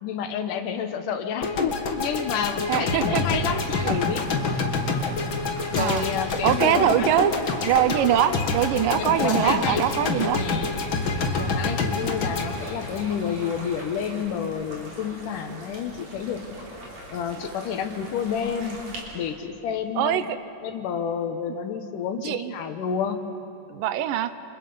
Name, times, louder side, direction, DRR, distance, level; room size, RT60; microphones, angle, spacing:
voice 1, 0.0-4.3 5.7-7.1 9.0-9.8 10.3-10.7 11.3-16.4 17.1-18.8 19.1-20.2 20.6-23.2, left 7 dB, 70° left, 7 dB, 2.6 m, -29 dB
sound 1, 1.4-13.6, left 3 dB, 45° left, 1.9 m, -27 dB
voice 2, 2.7-3.2 3.8-4.0 5.8-6.1 6.4-7.3 7.6-10.4 20.0-20.4 22.2-22.5 23.7-24.3, right 11 dB, 80° right, 13 dB, 2.3 m, -23 dB
sound 2, 3.3-19.0, right 1 dB, 50° right, 4.8 m, -43 dB
sound 3, 5.1-11.2 12.1-14.1, left 1 dB, 15° left, 3.9 m, -43 dB
28.5 x 26.5 x 5.5 m, 2.7 s
omnidirectional pair, 4.0 m